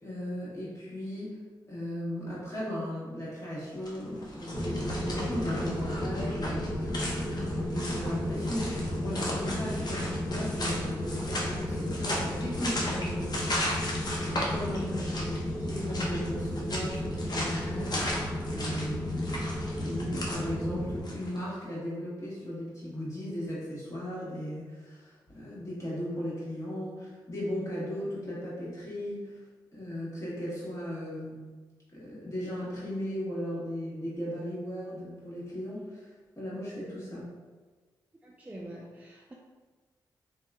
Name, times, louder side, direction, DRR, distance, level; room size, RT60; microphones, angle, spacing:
voice 1, 0.0-1.4 1.7-29.4 29.7-31.5 31.9-36.1 36.3-37.3, equal, 35° left, -7 dB, 1.3 m, -37 dB
sound 1, 3.7-21.4, left 1 dB, 50° left, 0.6 m, -37 dB
sound 2, 4.5-21.0, left 1 dB, 15° left, 1.3 m, -33 dB
voice 2, 14.9-15.3 38.2-39.3, right 1 dB, 15° right, -3 dB, 0.4 m, -44 dB
2.8 x 2.2 x 2.3 m, 1.4 s
supercardioid pair, 45°, 9 cm